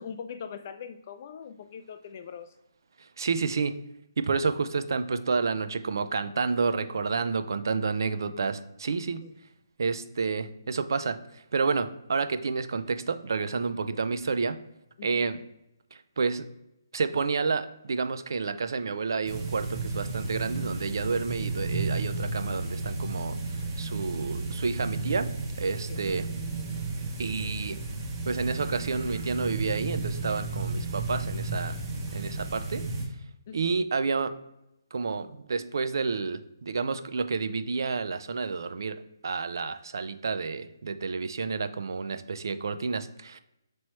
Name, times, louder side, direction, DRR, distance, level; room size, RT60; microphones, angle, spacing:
voice 1, 0.0-2.5 9.2-9.3 15.0-15.2 25.9-26.0 33.5-33.7, left 7 dB, 35° left, 0.3 m, -41 dB
voice 2, 3.2-3.7 4.2-9.2 9.8-11.2 11.5-14.6 15.0-15.4 16.2-16.4 16.9-23.4 23.8-25.3 25.6-26.3 27.2-27.8 28.3-31.8 32.1-32.8 33.5-34.3 34.9-39.0 39.2-43.4, right 4 dB, 65° right, 0.4 m, -29 dB
sound 1, 19.3-33.1, right 3 dB, 20° right, 0.7 m, -33 dB
4.2 x 3.1 x 3.0 m
hypercardioid pair, 160°, 2 cm